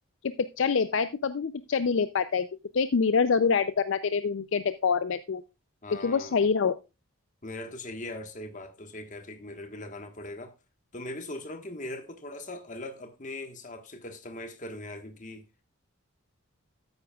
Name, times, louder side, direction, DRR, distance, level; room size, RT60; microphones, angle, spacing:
voice 1, 0.4-2.5 2.7-5.4 6.0-6.8, left 5 dB, 60° left, 0.4 m, -25 dB
voice 2, 5.8-6.5 7.4-10.5 10.9-15.4, left 1 dB, 35° left, 1.4 m, -40 dB
13.0 x 9.6 x 2.3 m
head